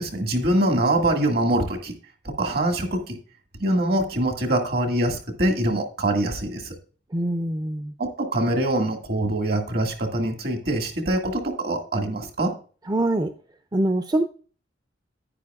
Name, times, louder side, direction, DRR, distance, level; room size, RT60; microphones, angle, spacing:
voice 1, 0.0-1.9 2.2-3.2 3.6-6.7 8.0-12.5, right 1 dB, 60° right, 2.0 m, -24 dB
voice 2, 7.1-7.9 12.9-13.3 13.7-14.2, right 1 dB, 25° right, 0.5 m, -24 dB
10.0 x 9.9 x 2.4 m
head